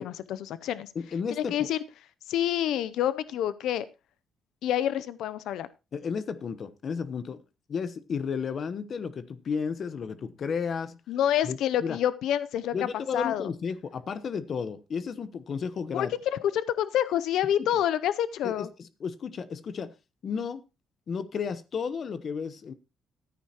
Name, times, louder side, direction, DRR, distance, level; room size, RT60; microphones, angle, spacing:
voice 1, 0.0-0.9 1.4-1.8 2.3-3.8 4.6-5.7 11.1-12.7 13.1-13.5 15.9-18.7, left 11 dB, 80° left, 15 dB, 0.5 m, -27 dB
voice 2, 0.9-1.7 5.9-7.4 7.7-11.0 11.4-12.0 12.7-16.1 17.6-17.7 18.4-19.9 20.2-20.6 21.1-22.7, left 6 dB, 55° left, 13 dB, 1.0 m, -33 dB
14.0 x 9.3 x 2.9 m, 0.28 s
cardioid pair, 90°, 0 cm